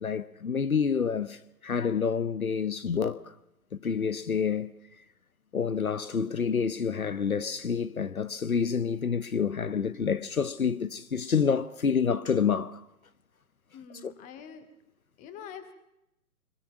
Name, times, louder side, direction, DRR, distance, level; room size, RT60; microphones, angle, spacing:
voice 1, 0.0-3.2 3.8-4.7 5.5-12.8 14.0-14.1, left 6 dB, 70° left, 1.1 m, -28 dB
voice 2, 13.7-14.7 15.2-15.7, left 7 dB, 15° left, 2.2 m, -45 dB
25.5 x 22.5 x 5.9 m
figure-of-eight pair, 130°, 44 cm